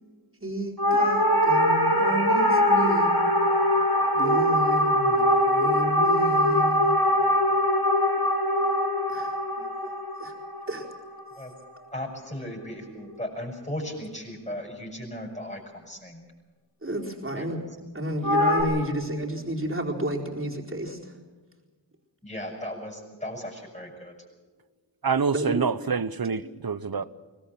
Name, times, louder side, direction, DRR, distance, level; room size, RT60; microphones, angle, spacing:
voice 1, 0.4-3.2 4.1-6.9 9.1-9.9 10.2-10.3 10.7-10.8 11.8-11.9 16.8-17.7 17.9-21.1 25.3-25.6, right 1 dB, 30° right, 4.4 m, -31 dB
sound 1, 0.8-11.3 18.2-18.6, equal, 55° left, 4.6 m, -22 dB
voice 2, 11.9-16.2 17.3-17.5 22.2-24.1, left 1 dB, 15° left, 7.1 m, -36 dB
voice 3, 25.0-27.0, right 5 dB, 55° right, 1.0 m, -26 dB
22.5 x 19.0 x 7.7 m
wide cardioid pair, 40°, 44 cm